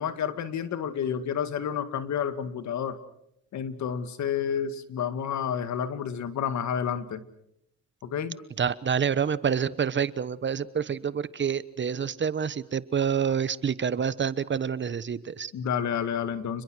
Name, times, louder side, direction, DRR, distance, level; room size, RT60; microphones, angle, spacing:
voice 1, 0.0-3.0 3.5-7.2 8.0-8.4 13.2-13.4 15.5-16.6, left 8 dB, 70° left, 12 dB, 2.1 m, -30 dB
voice 2, 8.6-15.5, right 7 dB, 40° right, 17 dB, 1.1 m, -27 dB
29.5 x 22.0 x 6.3 m, 0.77 s
cardioid pair, 90°, 30 cm